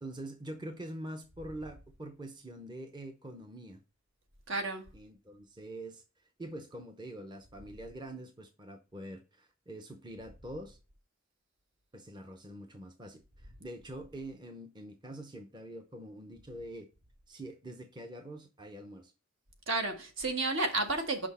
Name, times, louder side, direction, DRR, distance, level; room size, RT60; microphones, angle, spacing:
voice 1, 0.0-3.8 4.9-6.0 6.4-10.8 11.9-16.9 17.3-19.1, right 1 dB, 20° right, 0.7 m, -45 dB
voice 2, 4.5-4.9 19.7-21.3, right 2 dB, 65° right, 1.4 m, -31 dB
6.2 x 5.5 x 4.2 m
head